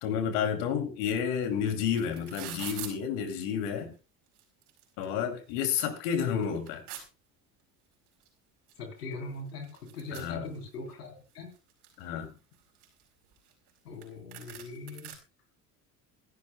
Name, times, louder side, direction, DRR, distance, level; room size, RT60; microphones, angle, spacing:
voice 1, 0.0-3.9 5.0-6.8 10.1-10.5 12.0-12.3, left 8 dB, 65° left, 7 dB, 2.7 m, -30 dB
sound 1, 1.4-1.5 1.7-2.9 3.8-3.9 4.3-5.0 5.5-5.6 6.0-7.0 8.2-8.3 8.7-8.8 9.0-10.9 11.3-12.0 12.5-13.8 14.0-14.1 14.3-15.1, right 11 dB, 60° right, 4.6 m, -44 dB
voice 2, 8.8-9.7 9.9-11.5 13.9-15.1, left 3 dB, 85° left, 5 dB, 3.5 m, -41 dB
24.5 x 12.0 x 2.2 m, 0.29 s
hypercardioid pair, 65°, 47 cm